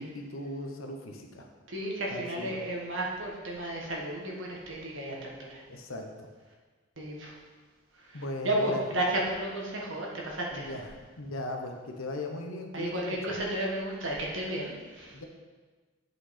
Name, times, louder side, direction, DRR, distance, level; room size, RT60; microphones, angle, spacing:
voice 1, 0.0-1.5 2.1-2.6 5.7-6.1 8.1-8.8 10.5-10.9 11.2-13.2 15.1-15.2, left 1 dB, 85° left, 3 dB, 0.9 m, -38 dB
voice 2, 1.7-5.6 7.0-7.4 7.9-10.7 12.7-15.2, right 1 dB, 70° right, -2 dB, 1.5 m, -33 dB
8.0 x 5.3 x 4.3 m, 1.4 s
head